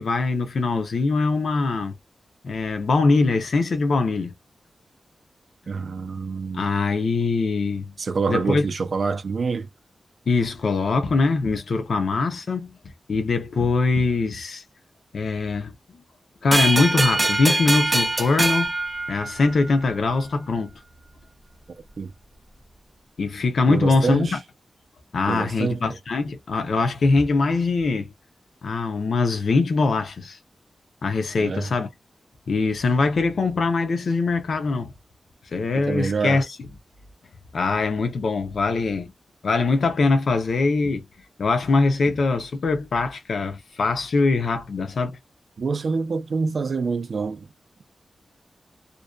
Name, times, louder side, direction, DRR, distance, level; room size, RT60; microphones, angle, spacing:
voice 1, 0.0-1.9 2.4-4.3 6.5-7.9 8.3-8.6 10.3-12.8 13.1-14.6 15.1-15.7 16.4-18.7 19.1-20.7 23.2-24.4 25.1-28.1 28.6-30.4 31.0-31.9 32.5-34.9 35.5-36.6 37.5-39.1 39.4-41.0 41.4-45.2, left 3 dB, 70° left, 0.5 m, -22 dB
voice 2, 5.7-6.7 8.0-9.7 22.0-22.1 23.7-24.4 25.3-26.0 31.4-31.7 35.7-36.4 45.6-47.5, right 4 dB, 60° right, 0.4 m, -26 dB
sound 1, 16.5-19.8, right 2 dB, 15° right, 0.6 m, -23 dB
2.5 x 2.2 x 2.2 m
wide cardioid pair, 145°, 0 cm